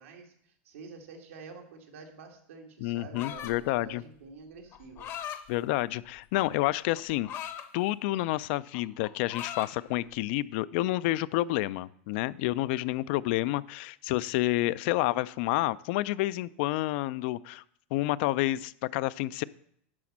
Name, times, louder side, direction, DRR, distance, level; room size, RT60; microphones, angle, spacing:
voice 1, 0.0-5.1, right 4 dB, 85° right, 2 dB, 2.0 m, -48 dB
voice 2, 2.8-4.0 5.5-7.3 7.7-17.6 17.9-19.4, left 17 dB, 55° left, 18 dB, 0.4 m, -29 dB
sound 1, 3.1-3.7 4.7-5.4 6.3-7.7 8.1-8.4 8.7-9.7, left 10 dB, 40° left, 0.8 m, -39 dB
11.0 x 4.2 x 7.2 m, 0.67 s
supercardioid pair, 140°, 7 cm